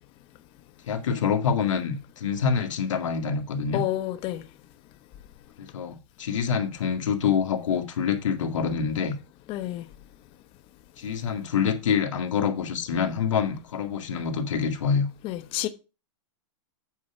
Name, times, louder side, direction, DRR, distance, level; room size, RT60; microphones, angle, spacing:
voice 1, 0.9-3.8 5.6-9.2 11.0-15.1, left 6 dB, 80° left, 2.0 m, -26 dB
voice 2, 3.7-4.4 9.5-9.9 15.2-15.7, left 14 dB, 35° left, 1.0 m, -29 dB
8.5 x 4.8 x 5.8 m
hypercardioid pair, 140°, 16 cm